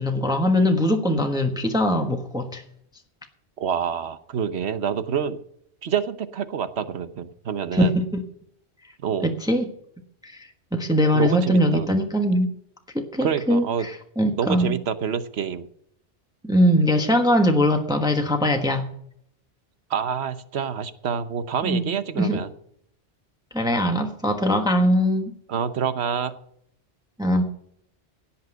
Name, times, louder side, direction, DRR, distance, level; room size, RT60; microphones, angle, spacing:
voice 1, 0.0-2.6 7.7-8.2 9.2-9.6 10.2-10.3 10.7-12.5 12.9-14.7 16.4-18.9 21.6-21.9 22.2-22.4 23.5-25.3 27.2-27.4, equal, 5° right, 4 dB, 1.3 m, -21 dB
voice 2, 3.6-5.4 5.8-7.9 9.0-9.3 11.1-11.9 13.2-13.9 14.4-15.7 19.9-22.5 25.5-26.3, right 7 dB, 70° right, 12 dB, 1.2 m, -27 dB
17.0 x 5.9 x 7.8 m, 0.70 s
omnidirectional pair, 1.1 m